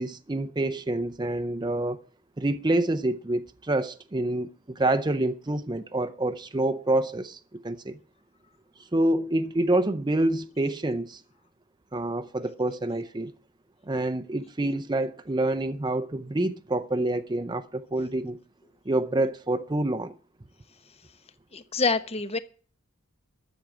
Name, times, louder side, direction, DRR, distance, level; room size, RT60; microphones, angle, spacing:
voice 1, 0.0-2.0 2.4-8.0 8.9-11.2 11.9-13.3 13.9-18.4 18.9-20.1, right 1 dB, 20° right, 0.6 m, -27 dB
voice 2, 21.5-22.4, left 4 dB, 30° left, 0.9 m, -26 dB
13.0 x 7.2 x 7.6 m
head